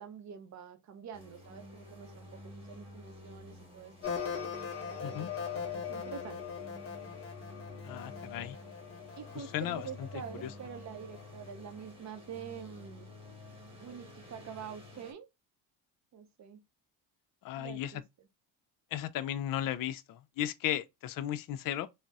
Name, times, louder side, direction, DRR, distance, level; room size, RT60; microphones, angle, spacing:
voice 1, 0.0-4.1 4.9-6.4 9.2-13.1 13.8-15.3 16.1-16.6 17.6-18.0, right 7 dB, 45° right, 0.6 m, -46 dB
sound 1, 1.1-15.1, left 2 dB, 15° right, 1.4 m, -50 dB
sound 2, 4.0-11.5, left 6 dB, 35° left, 1.0 m, -41 dB
voice 2, 7.8-8.6 9.3-10.1 10.4-10.5 17.4-17.9 18.9-21.9, left 12 dB, 55° left, 0.5 m, -35 dB
3.8 x 2.0 x 2.3 m
supercardioid pair, 90°, 42 cm